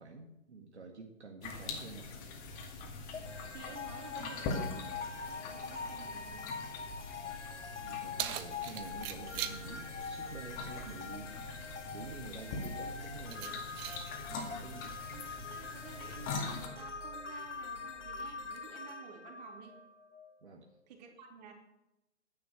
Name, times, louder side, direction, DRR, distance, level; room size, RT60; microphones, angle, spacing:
voice 1, 0.0-2.2 7.8-11.4 11.9-13.6 14.6-14.9 20.4-20.7, right 4 dB, 70° right, 3 dB, 1.9 m, -48 dB
sound 1, 1.4-16.7, left 4 dB, 25° left, 2.1 m, -43 dB
sound 2, 3.1-20.3, left 5 dB, 80° left, 1.4 m, -44 dB
voice 2, 3.5-6.5 15.1-19.8 20.9-21.5, right 7 dB, 35° right, 3 dB, 3.0 m, -52 dB
Keys jangling, 7.5-18.6, right 12 dB, 20° right, 0.7 m, -47 dB
10.0 x 9.9 x 7.9 m, 0.92 s
figure-of-eight pair, 125°, 35 cm